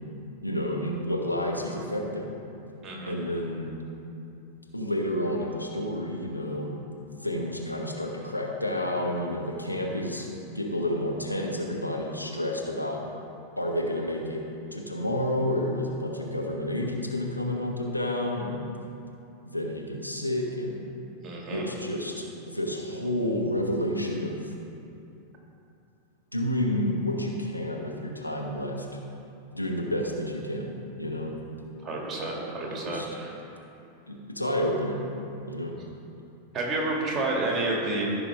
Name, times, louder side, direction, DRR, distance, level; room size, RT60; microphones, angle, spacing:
voice 1, 0.4-2.3 3.1-3.7 4.7-6.8 7.2-10.3 10.5-13.0 13.6-14.4 14.7-18.6 19.4-20.9 21.5-24.5 26.3-28.9 29.5-30.7 31.0-31.3 32.6-33.1 34.1-35.0 35.5-35.7, left 1 dB, 85° left, 0 dB, 1.0 m, -30 dB
voice 2, 2.8-3.1 21.2-21.7 31.8-33.3 36.5-38.0, right 2 dB, 25° right, -2 dB, 2.1 m, -30 dB
15.0 x 5.5 x 3.6 m, 2.7 s
figure-of-eight pair, 90°, 0 cm